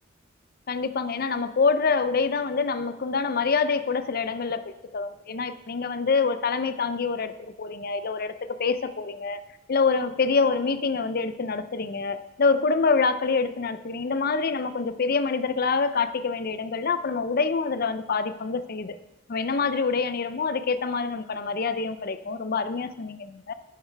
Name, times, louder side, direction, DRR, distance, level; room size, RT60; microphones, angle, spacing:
voice 1, 0.7-9.4 9.7-19.0 19.3-23.5, left 4 dB, 50° left, 12 dB, 0.6 m, -26 dB
10.5 x 9.3 x 3.4 m, 0.95 s
head